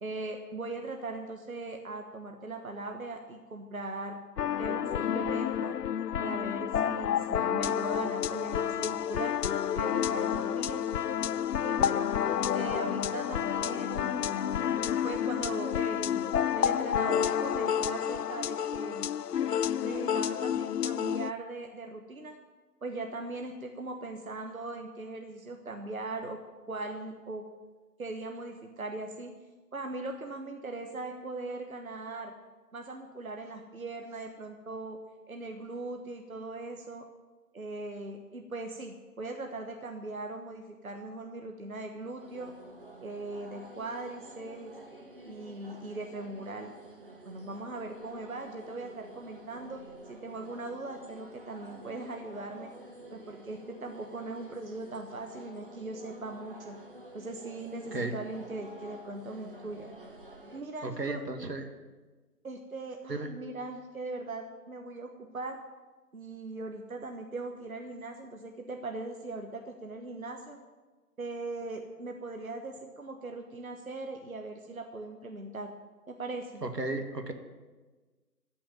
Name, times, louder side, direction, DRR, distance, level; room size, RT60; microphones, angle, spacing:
voice 1, 0.0-4.2 4.6-5.8 6.2-9.4 9.7-10.8 11.6-12.1 12.5-14.4 15.0-19.1 19.8-22.4 22.8-26.4 26.7-27.4 28.0-29.3 29.7-32.3 32.7-35.0 35.3-37.0 37.5-42.5 43.0-44.7 45.2-46.7 47.2-49.8 50.1-52.7 53.1-56.8 57.1-59.9 60.5-61.2 62.4-65.6 66.1-70.6 71.2-75.7 76.1-76.6, right 2 dB, 60° right, 4 dB, 1.3 m, -39 dB
sound 1, 4.4-21.3, left 9 dB, 75° left, 0.5 m, -30 dB
sound 2, 42.2-60.6, right 1 dB, 35° right, 1.3 m, -50 dB
voice 2, 60.5-61.7 63.1-63.3 76.6-77.3, right 2 dB, 80° right, 6 dB, 2.1 m, -35 dB
14.0 x 7.0 x 9.1 m, 1.3 s
figure-of-eight pair, 175°, 48 cm